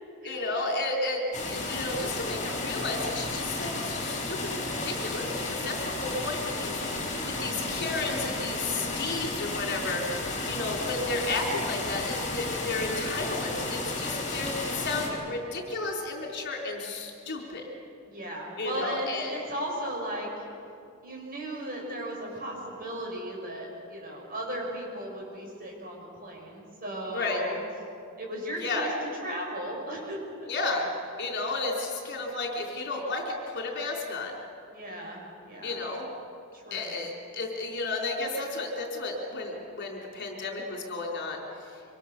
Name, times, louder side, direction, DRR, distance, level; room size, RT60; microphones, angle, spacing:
voice 1, 0.2-17.6 18.6-19.4 27.1-27.4 28.6-28.9 30.5-30.8 31.2-34.3 35.6-36.1 36.7-41.4, left 3 dB, 55° left, 0 dB, 4.3 m, -33 dB
sound 1, 1.3-15.1, left 2 dB, 35° left, 5.9 m, -33 dB
voice 2, 18.1-20.5 21.0-27.6 28.2-28.9 29.2-30.5 34.7-35.8 36.5-37.0, right 1 dB, 45° right, -1 dB, 7.2 m, -36 dB
26.5 x 25.0 x 6.9 m, 2.5 s
head